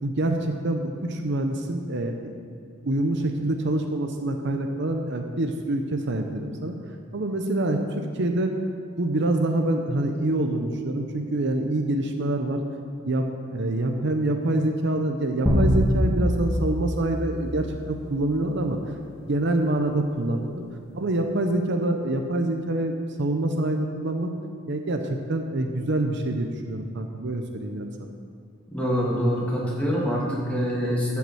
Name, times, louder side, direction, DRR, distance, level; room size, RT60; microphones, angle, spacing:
voice 1, 0.0-2.4 2.8-6.8 7.1-8.6 9.0-12.6 13.1-18.8 19.3-20.6 20.9-24.3 24.7-28.1, right 1 dB, 60° right, 4 dB, 0.8 m, -26 dB
sound 1, 15.5-18.3, equal, 15° right, 2.1 m, -24 dB
voice 2, 28.7-31.2, equal, 5° left, -6 dB, 2.4 m, -25 dB
12.0 x 5.9 x 7.8 m, 2.3 s
head